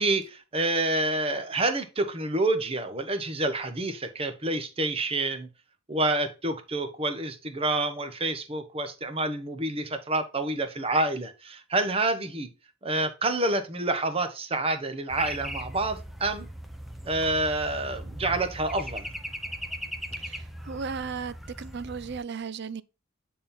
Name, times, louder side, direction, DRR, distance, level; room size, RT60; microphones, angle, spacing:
voice 1, 0.0-5.5 5.9-12.5 12.8-16.5 17.0-19.1, right 2 dB, 30° right, 1.0 m, -28 dB
sound 1, 15.1-22.2, equal, ahead, 0.7 m, -39 dB
voice 2, 20.2-22.8, right 5 dB, 55° right, 0.5 m, -36 dB
8.6 x 3.7 x 4.3 m
head